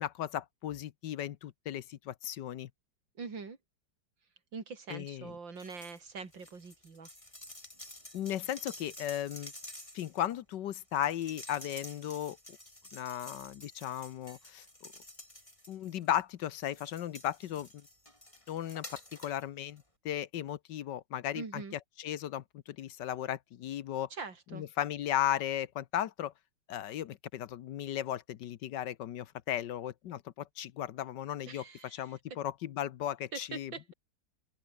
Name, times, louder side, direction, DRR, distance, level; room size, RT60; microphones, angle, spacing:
voice 1, 0.0-2.7 4.9-5.3 8.1-9.5 9.9-12.6 12.9-14.6 15.7-17.8 18.5-21.6 22.0-24.1 24.5-26.3 26.7-33.9, left 11 dB, 70° left, 1.4 m, -36 dB
voice 2, 3.2-3.6 4.5-7.1 21.3-21.7 24.1-24.6 31.5-32.4 33.3-33.9, right 5 dB, 75° right, 4.1 m, -43 dB
sound 1, 5.6-6.0 6.3-16.1 16.5-19.4 19.8-19.9, left 1 dB, 15° left, 6.2 m, -51 dB
open air
omnidirectional pair, 2.0 m